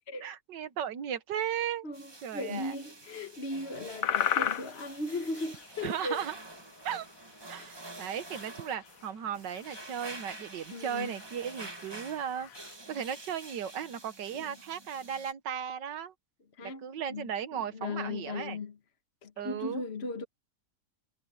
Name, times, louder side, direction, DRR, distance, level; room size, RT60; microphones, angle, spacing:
voice 1, 0.2-1.9 2.2-2.7 5.8-6.3 6.8-7.1 7.5-12.5 12.9-16.1 16.6-18.6 19.4-19.8, right 8 dB, 90° right, 1.8 m, -36 dB
voice 2, 1.8-6.2 7.5-7.7 10.7-11.1 14.3-14.5 16.5-18.7 19.2-20.2, left 2 dB, 40° left, 1.4 m, -37 dB
sound 1, 1.9-15.3, right 2 dB, 15° right, 1.2 m, -48 dB
sound 2, 3.9-7.1 7.4-7.5 7.7-12.7, left 10 dB, 60° left, 1.1 m, -36 dB
omnidirectional pair, 1.8 m